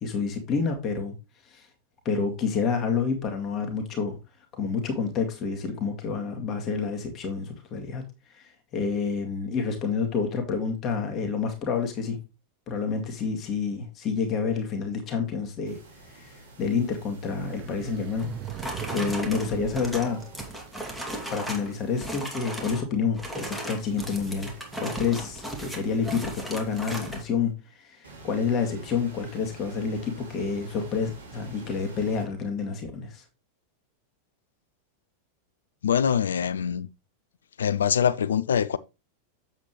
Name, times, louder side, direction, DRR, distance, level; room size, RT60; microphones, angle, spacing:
voice 1, 0.0-1.1 1.5-1.7 2.1-4.2 4.5-8.0 8.3-12.2 12.7-15.8 16.1-18.3 18.9-20.2 21.3-33.2, left 5 dB, 30° left, 2.0 m, -29 dB
sound 1, 15.7-19.1 19.5-22.6 23.3-27.2 28.0-32.3, right 2 dB, 70° right, 3.1 m, -48 dB
sound 2, 17.4-20.9, right 12 dB, 35° right, 0.6 m, -39 dB
sound 3, 18.2-21.7 22.0-22.8 23.1-27.2, right 1 dB, ahead, 2.5 m, -36 dB
voice 2, 35.8-36.9 37.6-38.8, left 8 dB, 65° left, 0.4 m, -24 dB
8.0 x 7.7 x 3.1 m
figure-of-eight pair, 90°, 0 cm